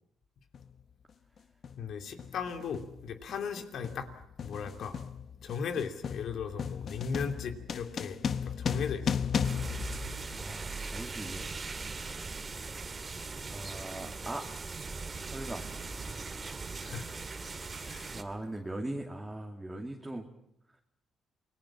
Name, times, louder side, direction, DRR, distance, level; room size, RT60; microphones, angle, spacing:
sound 1, 0.5-0.7 1.6-1.9 2.2-10.7, left 7 dB, 50° left, 1.0 m, -35 dB
voice 1, 1.8-4.1 4.4-4.9 5.4-9.3 9.9-10.0 16.8-17.1 17.9-18.1, left 6 dB, 70° left, 7 dB, 2.9 m, -37 dB
sound 2, 9.4-18.2, right 4 dB, 30° right, 2.3 m, -40 dB
voice 2, 10.4-11.5 13.5-14.5 15.2-15.6 18.1-20.2, right 1 dB, 10° right, 1 dB, 2.6 m, -40 dB
28.0 x 19.5 x 7.5 m, 0.75 s
cardioid pair, 90°, 0 cm